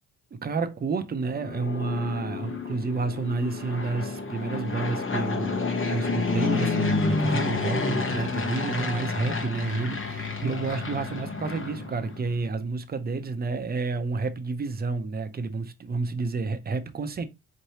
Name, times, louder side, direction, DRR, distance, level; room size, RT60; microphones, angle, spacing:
voice 1, 0.4-5.6 5.9-17.2, right 4 dB, 30° right, 0.7 m, -30 dB
Fixed-wing aircraft airplane, 1.2-12.3, left 3 dB, 40° left, 1.0 m, -29 dB
4.4 x 3.1 x 2.8 m
cardioid pair, 85°, 32 cm